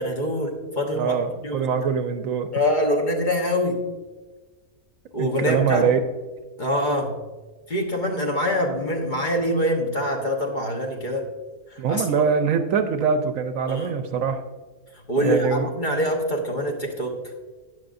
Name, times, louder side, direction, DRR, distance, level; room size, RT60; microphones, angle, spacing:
voice 1, 0.0-1.1 1.4-1.7 2.5-3.8 5.1-5.9 6.6-7.1 7.7-11.3 11.7-12.1 13.7-14.0 15.1-17.2, equal, 35° left, 1 dB, 1.2 m, -24 dB
voice 2, 1.0-2.5 5.2-6.0 11.8-14.4 15.2-15.7, right 6 dB, 70° right, 8 dB, 1.0 m, -23 dB
12.5 x 9.5 x 2.6 m, 1.3 s
omnidirectional pair, 1.5 m